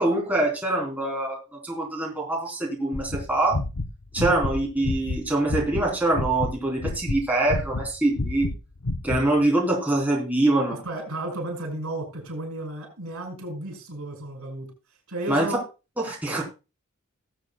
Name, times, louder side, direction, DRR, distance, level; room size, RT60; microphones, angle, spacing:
voice 1, 0.0-3.6 4.1-8.5 9.0-10.8 15.3-15.5 16.0-16.4, right 2 dB, 5° right, -3 dB, 3.2 m, -24 dB
sound 1, 2.9-5.9 6.1-8.6 8.8-9.2, left 2 dB, 70° left, 0.8 m, -29 dB
voice 2, 10.8-14.7 15.1-15.6, right 1 dB, 80° right, 1 dB, 5.9 m, -33 dB
20.0 x 8.0 x 2.2 m, 0.30 s
head